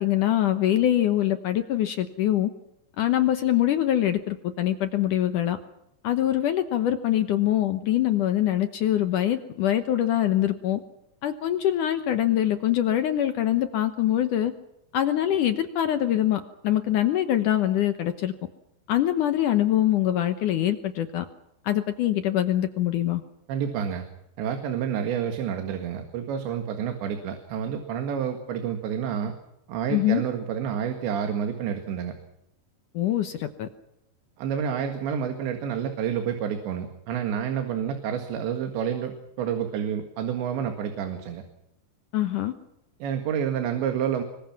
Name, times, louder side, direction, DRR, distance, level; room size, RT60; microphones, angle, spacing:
voice 1, 0.0-2.5 3.0-5.6 6.0-10.8 11.2-14.5 14.9-18.3 18.9-21.3 21.7-23.2 29.9-30.2 32.9-33.7 42.1-42.5, left 12 dB, 75° left, 9 dB, 1.9 m, -24 dB
voice 2, 23.5-24.1 24.4-29.3 29.7-32.1 34.4-41.4 43.0-44.2, right 8 dB, 85° right, 6 dB, 4.1 m, -29 dB
26.0 x 23.0 x 6.0 m, 0.82 s
omnidirectional pair, 5.0 m